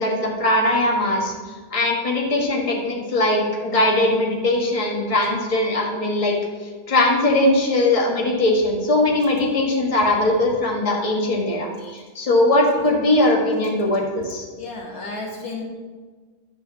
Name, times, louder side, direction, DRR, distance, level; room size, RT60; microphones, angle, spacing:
voice 1, 0.0-1.3 1.7-6.3 6.9-14.5, left 1 dB, 25° left, -2 dB, 1.5 m, -20 dB
voice 2, 14.6-15.6, left 3 dB, 65° left, -1 dB, 1.9 m, -32 dB
11.0 x 4.2 x 7.0 m, 1.4 s
omnidirectional pair, 1.7 m